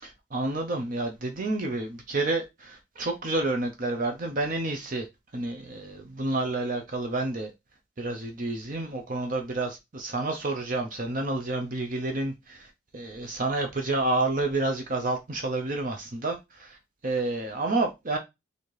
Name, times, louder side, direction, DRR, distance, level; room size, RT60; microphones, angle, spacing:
voice 1, 0.0-5.0 5.3-7.5 8.0-12.7 12.9-16.8 17.0-18.2, right 2 dB, 40° right, 0.6 m, -29 dB
4.2 x 2.6 x 3.0 m
head